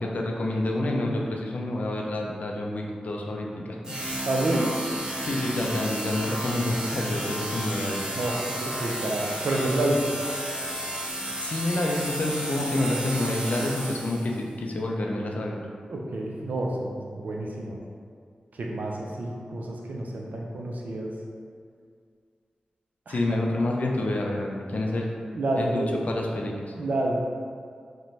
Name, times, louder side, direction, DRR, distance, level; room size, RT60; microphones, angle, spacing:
voice 1, 0.0-3.8 4.1-4.2 5.2-8.1 11.4-15.6 23.1-25.1 25.6-26.7, left 1 dB, 65° left, 0 dB, 0.4 m, -28 dB
sound 1, 3.8-14.4, right 1 dB, 25° right, 0.7 m, -32 dB
voice 2, 4.2-4.7 8.1-10.1 15.9-17.8 18.5-21.2 23.1-23.4 25.3-25.9 26.7-27.2, right 1 dB, 75° right, -1 dB, 0.4 m, -29 dB
2.6 x 2.1 x 3.0 m, 2.1 s
cardioid pair, 45°, 3 cm